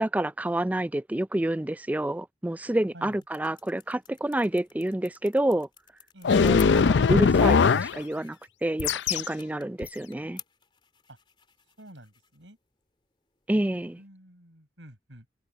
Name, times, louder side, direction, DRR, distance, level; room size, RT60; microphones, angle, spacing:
voice 1, 0.0-5.7 6.4-10.4 13.5-14.0, right 1 dB, 10° right, 0.3 m, -28 dB
sound 1, 2.5-14.1, left 8 dB, 25° left, 3.0 m, -53 dB
sound 2, 6.2-8.0 8.8-9.3 9.8-9.9, left 5 dB, 75° left, 0.5 m, -20 dB
voice 2, 11.8-12.6 14.0-15.3, right 1 dB, 85° right, 7.7 m, -49 dB
head